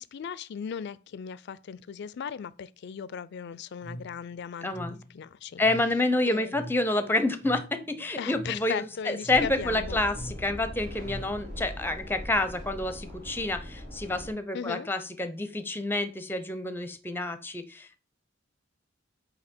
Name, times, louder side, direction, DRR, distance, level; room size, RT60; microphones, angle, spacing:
voice 1, 0.0-5.6 6.3-6.6 8.2-10.0 14.5-14.9, left 7 dB, 60° left, 0.4 m, -37 dB
sound 1, 3.8-11.7, equal, 10° right, 1.0 m, -44 dB
voice 2, 4.6-5.0 5.6-18.0, left 2 dB, 10° left, 0.6 m, -28 dB
sound 2, 9.3-14.3, equal, 70° right, 2.1 m, -40 dB
8.2 x 2.8 x 4.3 m
head